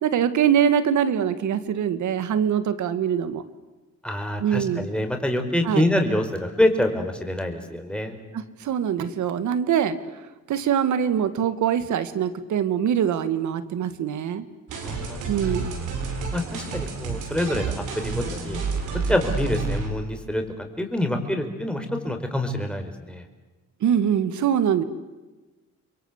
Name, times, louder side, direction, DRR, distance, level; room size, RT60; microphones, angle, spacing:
voice 1, 0.0-3.4 4.4-4.9 5.7-5.8 8.6-10.0 10.5-14.5 15.3-15.7 23.8-24.8, right 9 dB, 75° right, 12 dB, 2.1 m, -23 dB
voice 2, 4.0-8.2 14.8-15.5 16.3-18.6 19.1-23.2, left 1 dB, 5° left, 4 dB, 4.8 m, -26 dB
sound 1, 14.7-19.9, right 4 dB, 90° right, 6.2 m, -29 dB
30.0 x 23.0 x 8.3 m, 1.2 s
cardioid pair, 90°, 30 cm